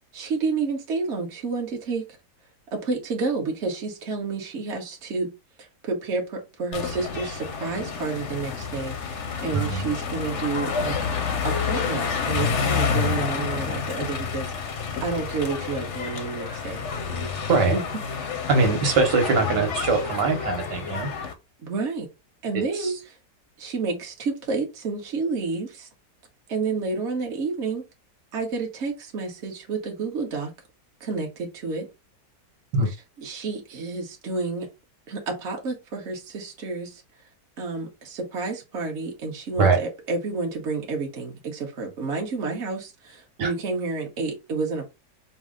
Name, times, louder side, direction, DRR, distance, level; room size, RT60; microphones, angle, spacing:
voice 1, 0.1-2.0 2.7-5.3 5.8-10.9 11.4-16.8 17.1-17.3 17.7-17.8 18.2-18.3 21.6-22.1 22.4-22.9 23.6-25.9 26.5-27.8 28.3-30.5 31.0-31.9 32.9-34.7 35.1-37.0 37.6-44.8, right 4 dB, 45° right, 1.4 m, -30 dB
sound 1, 6.7-21.3, left 6 dB, 55° left, 0.9 m, -29 dB
voice 2, 9.5-9.9 17.5-17.8 18.5-21.1 22.7-22.9 32.7-32.9 39.6-39.8 43.4-43.5, right 4 dB, 80° right, 1.7 m, -22 dB
5.3 x 2.1 x 3.7 m
omnidirectional pair, 1.8 m